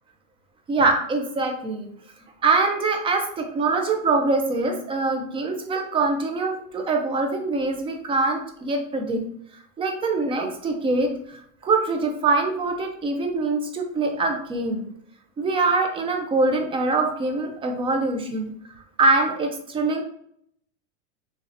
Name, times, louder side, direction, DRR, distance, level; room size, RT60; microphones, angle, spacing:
voice 1, 0.7-1.9 2.4-9.3 9.5-14.9 15.4-18.5 19.0-20.0, right 3 dB, 15° right, 4 dB, 0.4 m, -24 dB
3.2 x 2.7 x 2.5 m, 0.67 s
supercardioid pair, 120°, 36 cm